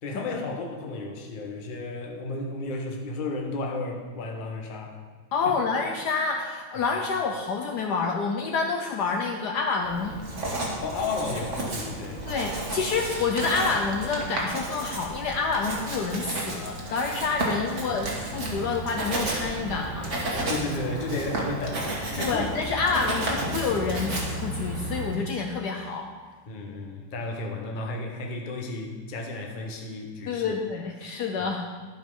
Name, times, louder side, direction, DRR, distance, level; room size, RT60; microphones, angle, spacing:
voice 1, 0.0-5.0 5.4-5.5 10.8-12.3 20.5-22.5 26.5-30.6 31.4-31.5, left 3 dB, 35° left, 1 dB, 0.9 m, -33 dB
voice 2, 5.3-10.2 12.2-20.1 22.1-26.1 30.3-31.7, left 4 dB, 70° left, 2 dB, 1.1 m, -28 dB
Writing, 9.8-25.2, right 1 dB, 40° right, 1.7 m, -32 dB
12.0 x 5.3 x 5.4 m, 1.4 s
omnidirectional pair, 2.2 m